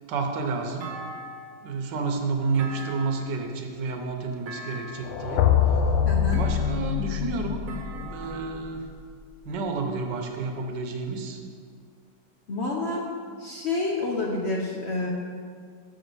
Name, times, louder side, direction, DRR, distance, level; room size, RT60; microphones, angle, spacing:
voice 1, 0.1-0.9 1.6-5.4 6.4-7.7 8.0-8.8 9.4-11.4, right 4 dB, 70° right, 3 dB, 1.5 m, -30 dB
Thump thud, 0.8-1.7 2.5-3.5 4.5-5.2 6.3-7.0 7.7-8.7, right 2 dB, 55° right, 1.2 m, -41 dB
sound 1, 5.0-9.0, left 8 dB, 80° left, 1.3 m, -25 dB
voice 2, 6.0-6.4 12.5-13.1 13.4-15.1, left 2 dB, 55° left, -2 dB, 0.7 m, -28 dB
6.8 x 5.1 x 6.7 m, 2.1 s
omnidirectional pair, 2.0 m